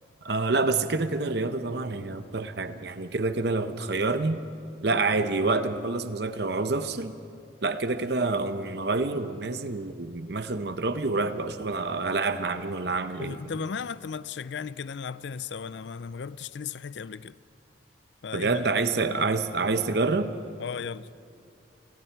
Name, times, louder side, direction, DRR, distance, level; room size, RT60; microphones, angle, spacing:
voice 1, 0.2-4.4 4.8-7.1 7.6-13.4 18.3-20.3, right 3 dB, 60° right, 10 dB, 0.8 m, -27 dB
voice 2, 13.2-17.3 18.2-18.6 18.9-19.2 20.6-21.1, left 6 dB, 65° left, 17 dB, 0.4 m, -36 dB
29.5 x 20.0 x 4.6 m, 2.6 s
head